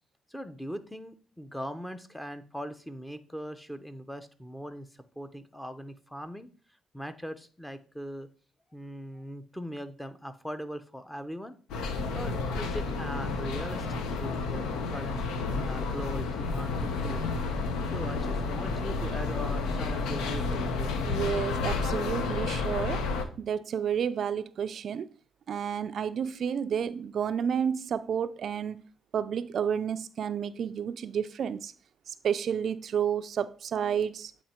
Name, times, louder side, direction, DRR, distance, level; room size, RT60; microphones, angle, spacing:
voice 1, 0.3-4.9 5.2-6.5 6.9-8.3 8.7-11.5 12.1-15.2 15.6-17.2 17.9-21.0, equal, 5° left, 0.7 m, -40 dB
sound 1, 11.7-23.2, left 4 dB, 90° left, 0.7 m, -31 dB
voice 2, 21.1-23.0 23.4-25.1 25.5-28.8 29.1-31.7 32.1-34.3, right 8 dB, 60° right, 0.3 m, -30 dB
8.6 x 3.1 x 4.3 m
cardioid pair, 90°, 0 cm